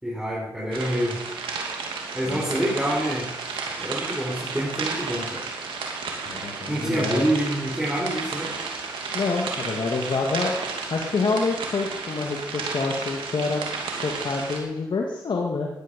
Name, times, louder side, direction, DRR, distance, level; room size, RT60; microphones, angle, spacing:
voice 1, 0.0-1.2 2.1-3.3 3.8-5.5 6.7-8.5, right 1 dB, 10° right, -5 dB, 5.0 m, -26 dB
sound 1, 0.7-14.6, right 4 dB, 85° right, 2.6 m, -32 dB
voice 2, 6.3-7.3 9.1-10.5 10.9-13.6 14.0-15.7, left 4 dB, 60° left, 0 dB, 2.0 m, -27 dB
15.5 x 11.0 x 5.3 m, 0.89 s
supercardioid pair, 45°, 9 cm